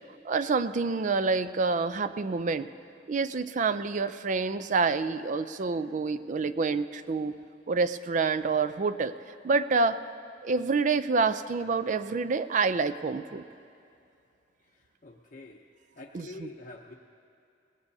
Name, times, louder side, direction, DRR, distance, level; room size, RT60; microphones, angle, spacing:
voice 1, 0.2-2.7 3.1-7.4 7.7-9.1 9.4-10.0 10.4-13.4 16.1-16.5, right 4 dB, 45° right, 13 dB, 0.4 m, -27 dB
voice 2, 14.6-15.6 16.0-16.9, left 2 dB, 45° left, -1 dB, 0.7 m, -46 dB
21.5 x 18.5 x 2.7 m, 2.6 s
head